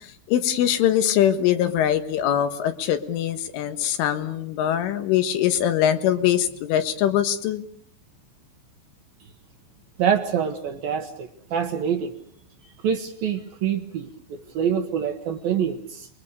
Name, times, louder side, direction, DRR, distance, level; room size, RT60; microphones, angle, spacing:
voice 1, 0.3-7.6, left 10 dB, 85° left, 9 dB, 4.0 m, -22 dB
voice 2, 10.0-12.1 12.8-16.1, right 8 dB, 65° right, 6 dB, 2.5 m, -26 dB
29.0 x 22.0 x 6.7 m, 0.62 s
omnidirectional pair, 5.5 m